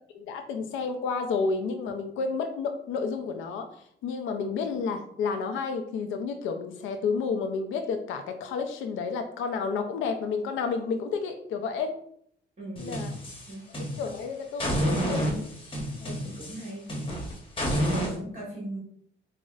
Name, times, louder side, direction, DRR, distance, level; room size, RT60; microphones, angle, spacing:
voice 1, 0.1-3.7 4.0-12.0 12.8-13.1 13.8-15.2 16.0-16.1, left 5 dB, 90° left, 7 dB, 0.4 m, -31 dB
voice 2, 12.6-13.0 13.5-13.6 14.6-15.4 16.2-16.9 17.8-18.8, right 1 dB, 35° right, -6 dB, 1.4 m, -38 dB
sound 1, 12.8-14.2 14.6-18.1, equal, 25° left, 1.0 m, -30 dB
5.4 x 2.0 x 2.4 m, 0.66 s
cardioid pair, 90°, 20 cm